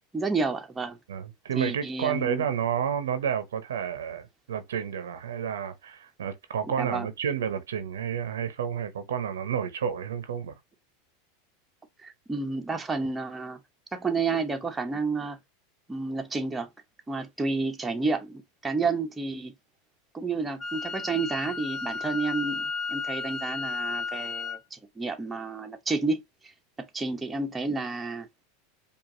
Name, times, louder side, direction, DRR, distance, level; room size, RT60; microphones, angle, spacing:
voice 1, 0.1-1.0 1.6-2.5 6.8-7.1 12.0-13.6 13.9-15.4 15.9-16.7 17.1-19.5 20.1-26.5 26.8-28.3, right 3 dB, 15° right, 0.8 m, -30 dB
voice 2, 1.1-10.6, right 8 dB, 85° right, 0.7 m, -30 dB
Wind instrument woodwind instrument, 20.6-24.6, left 4 dB, 25° left, 0.4 m, -33 dB
5.0 x 2.4 x 2.8 m
hypercardioid pair, 105°, 0 cm